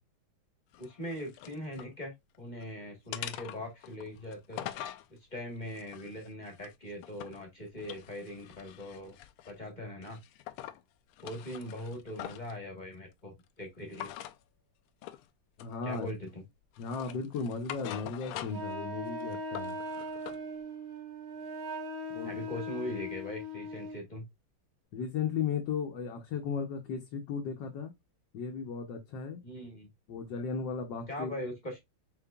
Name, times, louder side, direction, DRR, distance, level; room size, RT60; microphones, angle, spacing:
sound 1, 0.7-1.9 2.3-2.7 3.1-5.1 5.6-7.4 7.8-9.6 10.0-10.8 11.1-12.5 13.9-14.4 15.0-15.3 15.6-16.3 16.7-18.7 19.1-20.4, left 12 dB, 85° left, 1.5 m, -44 dB
voice 1, 0.8-4.7 5.3-9.2 9.5-10.2 11.2-14.1 15.8-16.4 22.2-24.2 29.4-29.9 31.1-31.8, left 1 dB, 25° left, 1.2 m, -41 dB
voice 2, 15.6-16.1 16.8-19.8 22.1-22.4 24.9-27.9 28.3-29.4 30.1-31.4, left 5 dB, 65° left, 1.4 m, -35 dB
Wind instrument woodwind instrument, 18.5-24.0, left 1 dB, 50° right, 1.4 m, -39 dB
5.8 x 3.6 x 2.3 m
omnidirectional pair, 2.3 m